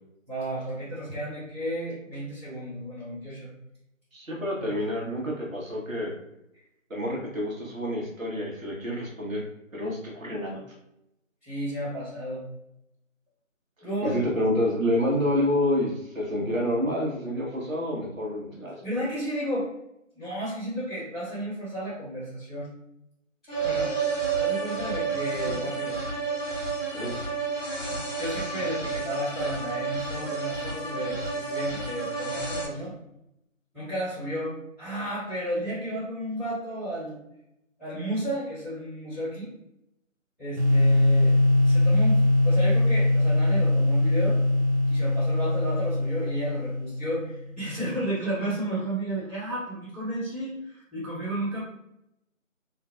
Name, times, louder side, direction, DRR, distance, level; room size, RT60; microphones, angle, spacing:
voice 1, 0.3-3.5 4.6-4.7 11.4-12.4 13.8-14.3 18.8-19.7 20.1-22.7 23.6-23.9 24.4-26.0 28.2-32.9 33.7-34.5 34.8-37.2 37.8-39.5 40.4-41.3 41.6-44.4 44.9-51.6, right 1 dB, ahead, -27 dB, 1.1 m, -32 dB
voice 2, 4.1-6.1 6.9-9.4 9.7-10.5 14.0-18.8 26.9-27.1, left 1 dB, 80° right, -2 dB, 1.3 m, -28 dB
sound 1, 23.5-32.7, right 4 dB, 65° left, 1.1 m, -30 dB
sound 2, 40.6-47.4, left 1 dB, 55° right, 0.6 m, -22 dB
3.8 x 2.5 x 2.3 m, 0.84 s
figure-of-eight pair, 175°, 40 cm